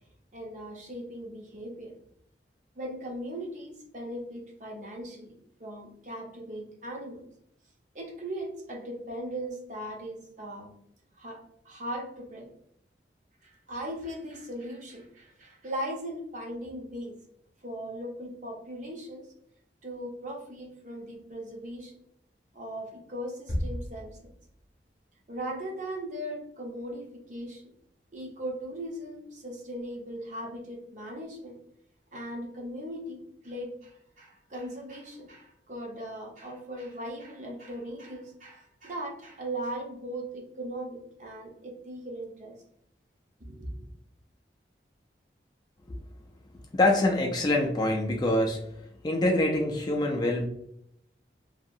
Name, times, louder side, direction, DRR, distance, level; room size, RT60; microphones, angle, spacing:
voice 1, 0.3-2.0 2.8-7.2 7.9-10.7 11.2-12.5 13.4-17.1 17.6-19.3 19.8-21.9 22.5-24.3 25.3-27.6 28.1-31.6 32.1-42.6 43.5-43.7, right 1 dB, 45° right, 0 dB, 0.6 m, -38 dB
sound 1, 23.5-24.9, equal, 50° left, 0.7 m, -34 dB
voice 2, 46.7-48.6 49.0-50.5, left 1 dB, 25° left, 1 dB, 0.3 m, -25 dB
2.7 x 2.3 x 2.6 m, 0.73 s
head